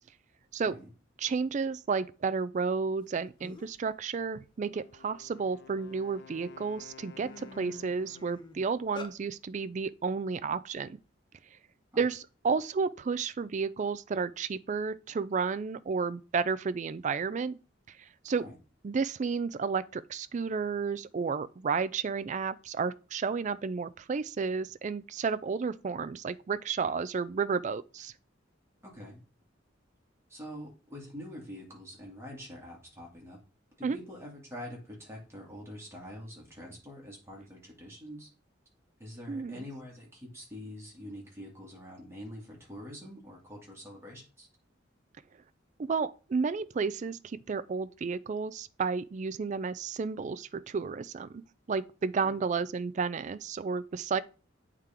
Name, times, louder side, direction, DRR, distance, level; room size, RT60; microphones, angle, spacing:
voice 1, 1.2-11.0 12.0-17.6 17.9-18.0 18.2-18.4 18.8-28.1 33.8-34.0 39.3-39.6 45.8-51.4 51.7-54.2, right 5 dB, 40° right, 0.3 m, -32 dB
sound 1, 3.1-3.2 3.4-3.8 4.3-5.9 6.4-6.6 6.9-9.1, left 3 dB, 25° left, 0.7 m, -47 dB
Wind instrument woodwind instrument, 4.7-8.6, left 7 dB, 55° left, 0.4 m, -53 dB
voice 2, 28.8-29.2 30.3-33.4 33.8-38.3 39.0-44.5 52.2-52.4, equal, 15° right, 2.4 m, -45 dB
8.2 x 3.7 x 4.4 m
head